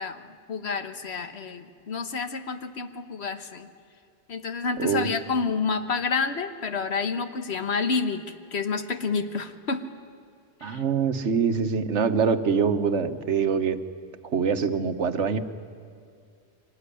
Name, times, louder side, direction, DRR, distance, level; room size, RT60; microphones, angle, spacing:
voice 1, 0.0-3.7 4.3-9.9 10.6-10.8, left 4 dB, 65° left, 9 dB, 1.5 m, -29 dB
voice 2, 4.8-5.1 10.6-13.8 14.3-15.4, right 6 dB, 80° right, 10 dB, 1.4 m, -24 dB
25.0 x 19.0 x 10.0 m, 2.3 s
omnidirectional pair, 1.2 m